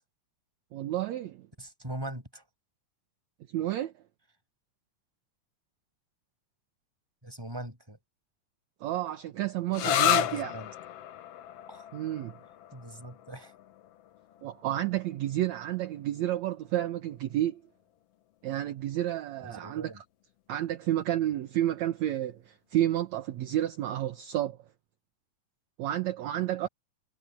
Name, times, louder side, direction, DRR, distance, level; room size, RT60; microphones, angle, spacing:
voice 1, 0.7-1.5 3.5-3.9 8.8-10.5 11.9-12.4 14.4-17.6 18.4-20.0 20.5-24.6 25.8-26.7, right 13 dB, 65° right, 2.1 m, -30 dB
voice 2, 1.6-2.4 7.2-8.0 9.8-10.7 11.7-11.9 12.7-13.5 19.4-20.0, right 1 dB, 5° right, 5.5 m, -40 dB
sound 1, 9.7-17.1, left 11 dB, 65° left, 1.6 m, -33 dB
omnidirectional pair, 3.7 m